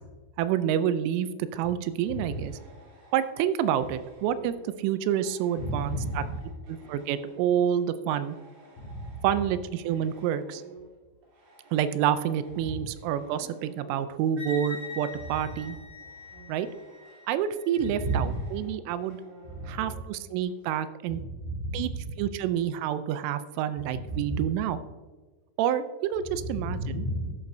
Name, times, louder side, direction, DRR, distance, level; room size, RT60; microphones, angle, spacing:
voice 1, 0.4-2.6 3.1-6.2 6.7-8.4 9.2-10.6 11.7-15.8 16.5-16.7 17.3-19.2 19.7-21.2 21.7-21.9 22.2-24.8 25.6-27.1, right 9 dB, 85° right, 12 dB, 3.0 m, -28 dB
sound 1, 1.6-7.9 8.1-20.5, right 2 dB, 65° right, 5.1 m, -53 dB
voice 2, 2.1-2.4 5.6-6.4 8.8-9.2 12.6-12.8 17.8-18.4 19.5-19.9 21.1-22.0 23.9-24.5 26.4-27.3, right 1 dB, 55° left, -3 dB, 4.6 m, -33 dB
Wind instrument woodwind instrument, 14.4-18.2, left 2 dB, 35° right, 2.8 m, -43 dB
13.0 x 8.6 x 2.6 m, 1.3 s
omnidirectional pair, 5.6 m